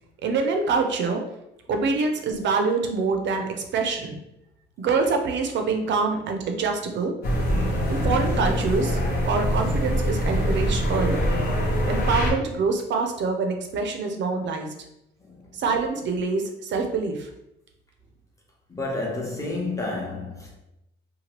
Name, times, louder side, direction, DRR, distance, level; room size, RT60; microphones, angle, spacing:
voice 1, 0.2-1.2 1.7-4.2 4.8-7.1 7.9-9.0 9.2-11.2 11.9-14.7 15.6-17.3, right 4 dB, 65° right, 0.5 m, -25 dB
sound 1, 7.2-12.3, equal, 50° left, 0.8 m, -24 dB
voice 2, 15.2-15.6 18.7-20.6, left 2 dB, 15° left, 0.9 m, -31 dB
2.9 x 2.2 x 3.0 m
cardioid pair, 90°, 20 cm